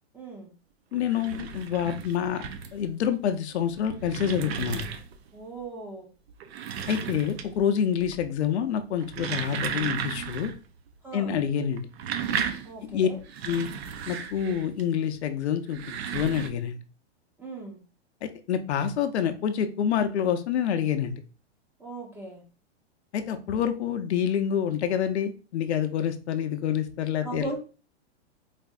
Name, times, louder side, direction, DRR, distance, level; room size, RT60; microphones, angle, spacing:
voice 1, 0.1-0.5 5.3-6.1 11.0-11.4 12.6-13.2 17.4-17.8 21.8-22.4 27.2-27.6, right 2 dB, 5° right, -1 dB, 0.6 m, -38 dB
voice 2, 0.9-4.9 6.9-10.5 11.1-11.9 12.8-13.1 13.4-13.7 14.1-15.8 16.1-16.8 18.2-21.2 23.1-27.5, left 8 dB, 80° left, 7 dB, 0.6 m, -27 dB
sound 1, 0.9-2.9 3.6-5.3 6.3-7.7 8.0-8.5 8.9-10.6 10.9-11.0 11.7-14.8 15.6-16.5, right 7 dB, 65° right, 0.6 m, -34 dB
4.1 x 2.5 x 2.3 m, 0.35 s
hypercardioid pair, 140°, 33 cm